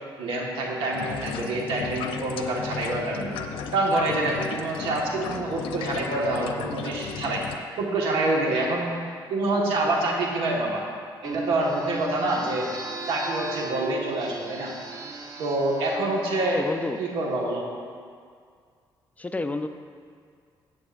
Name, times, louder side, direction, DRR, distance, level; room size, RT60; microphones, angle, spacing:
voice 1, 0.2-3.3 3.7-7.5 7.8-9.0 9.3-10.8 11.2-12.7 13.1-14.7 15.4-16.6 17.0-17.7, right 2 dB, 85° right, -1 dB, 1.6 m, -26 dB
sound 1, 0.9-7.6, left 7 dB, 85° left, 0.6 m, -35 dB
sound 2, 11.2-17.3, right 4 dB, 40° right, 1.2 m, -37 dB
voice 2, 16.5-17.0 19.2-19.7, left 2 dB, 15° left, 7 dB, 0.5 m, -29 dB
14.5 x 8.6 x 2.6 m, 2.1 s
cardioid pair, 75°, 9 cm